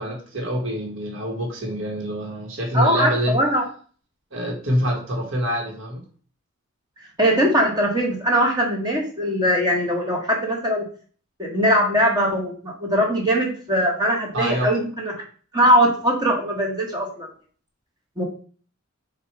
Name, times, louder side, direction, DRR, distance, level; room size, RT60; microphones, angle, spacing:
voice 1, 0.0-3.4 4.3-6.0 14.3-14.7, equal, 60° right, -1 dB, 1.4 m, -25 dB
voice 2, 2.7-3.6 7.2-10.8 11.4-15.1 15.5-17.3 18.2-18.3, equal, 20° right, 0 dB, 1.2 m, -21 dB
4.4 x 2.5 x 4.6 m, 0.42 s
head